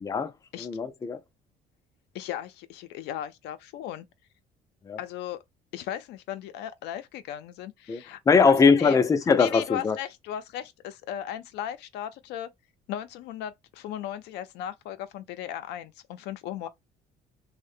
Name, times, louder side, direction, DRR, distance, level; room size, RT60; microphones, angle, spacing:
voice 1, 0.0-0.3 0.6-1.2 4.9-5.0 7.9-10.0, left 5 dB, 20° left, 0.4 m, -21 dB
voice 2, 2.1-4.1 5.0-5.4 5.7-9.0 9.4-12.5 12.9-16.7, left 11 dB, 80° left, 0.4 m, -36 dB
2.6 x 2.1 x 2.5 m
cardioid pair, 110°, 17 cm